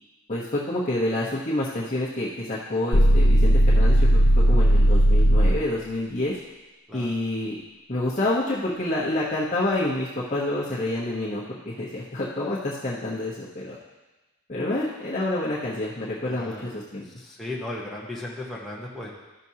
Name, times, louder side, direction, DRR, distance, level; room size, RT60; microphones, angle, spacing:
voice 1, 0.3-6.4 6.9-7.6 7.9-13.8 14.5-17.1, left 1 dB, 35° left, -7 dB, 1.0 m, -28 dB
sound 1, 2.9-5.7, equal, 80° left, 0.7 m, -17 dB
voice 2, 16.3-16.6 17.2-19.1, left 2 dB, ahead, -7 dB, 1.0 m, -36 dB
13.5 x 6.1 x 2.8 m, 1.2 s
head